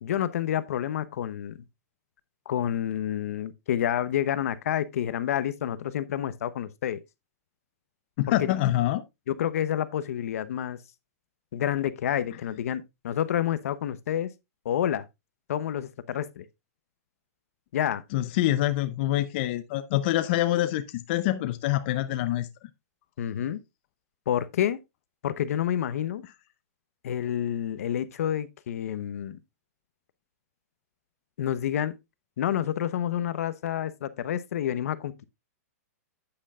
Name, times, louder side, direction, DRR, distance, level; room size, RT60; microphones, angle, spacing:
voice 1, 0.0-1.6 2.5-7.0 8.4-8.5 9.3-10.8 11.5-14.3 14.6-15.1 15.5-16.4 17.7-18.0 23.2-23.6 24.3-24.8 25.2-26.2 27.0-29.4 31.4-32.0 32.4-35.1, left 10 dB, 65° left, 0.9 m, -29 dB
voice 2, 8.2-9.0 18.1-22.5, left 14 dB, 40° left, 0.6 m, -26 dB
9.7 x 8.8 x 2.4 m
hypercardioid pair, 165°, 9 cm